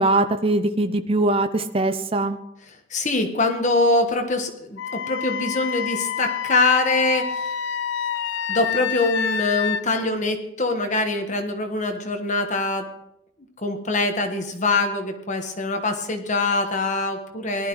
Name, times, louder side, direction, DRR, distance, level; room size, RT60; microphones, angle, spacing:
voice 1, 0.0-2.4, right 2 dB, 30° right, 9 dB, 0.6 m, -21 dB
voice 2, 2.9-7.5 8.5-12.9 13.6-17.7, left 3 dB, 40° left, 4 dB, 1.3 m, -23 dB
Wind instrument woodwind instrument, 4.8-9.8, left 7 dB, 65° left, 0.5 m, -28 dB
19.0 x 12.0 x 3.1 m, 0.78 s
head